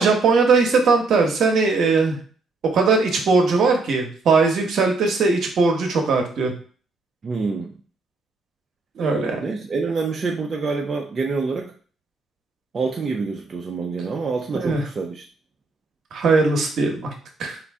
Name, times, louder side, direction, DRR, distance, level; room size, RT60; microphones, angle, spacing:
voice 1, 0.0-2.2 2.6-6.5 9.0-9.4 14.5-14.8 16.1-17.1 17.4-17.6, right 4 dB, 65° right, 3 dB, 1.0 m, -19 dB
voice 2, 7.2-7.7 9.4-11.7 12.7-15.2, right 4 dB, 40° right, 0 dB, 0.5 m, -26 dB
3.8 x 2.5 x 3.4 m, 0.42 s
cardioid pair, 90°, 0 cm